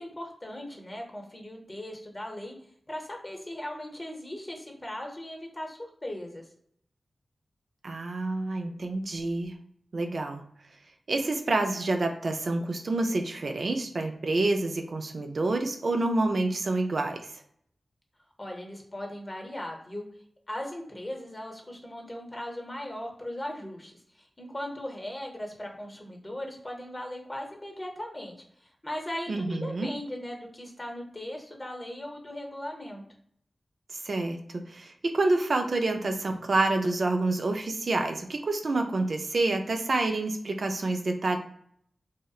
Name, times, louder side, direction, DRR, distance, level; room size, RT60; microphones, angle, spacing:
voice 1, 0.0-2.5 2.9-6.4 18.4-20.1 20.5-33.0, left 1 dB, 30° left, 2 dB, 0.7 m, -38 dB
voice 2, 7.8-9.6 9.9-10.4 11.1-17.3 29.3-29.9 33.9-41.4, right 2 dB, 65° right, 4 dB, 0.3 m, -28 dB
2.7 x 2.0 x 2.3 m, 0.67 s
cardioid pair, 40°, 0 cm